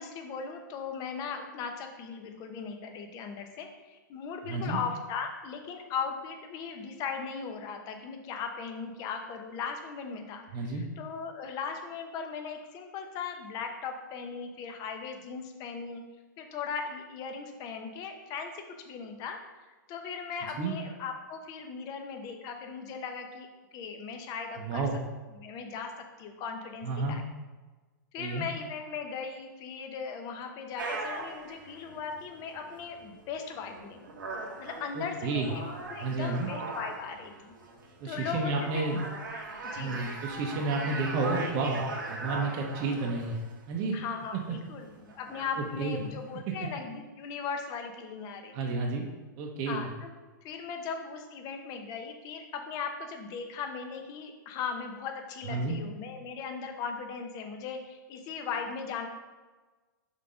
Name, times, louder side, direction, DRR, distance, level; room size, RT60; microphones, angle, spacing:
voice 1, 0.0-16.0 16.4-19.4 19.9-24.9 25.3-25.9 26.2-27.2 28.1-34.1 34.6-37.5 38.0-38.9 39.7-40.2 43.9-48.7 49.7-50.1 50.4-59.1, left 6 dB, 35° left, 5 dB, 0.9 m, -38 dB
voice 2, 4.5-4.8 10.5-10.8 20.6-20.7 24.6-25.0 26.8-27.2 28.2-28.5 34.9-35.5 36.0-36.5 38.0-39.0 39.8-43.4 43.7-43.9 45.8-46.0 48.5-49.0 49.4-49.9 55.5-55.8, right 3 dB, 40° right, 0 dB, 0.9 m, -31 dB
sound 1, 30.8-46.4, right 3 dB, 85° right, 1.3 m, -40 dB
5.6 x 3.6 x 5.1 m, 1.3 s
hypercardioid pair, 125°, 11 cm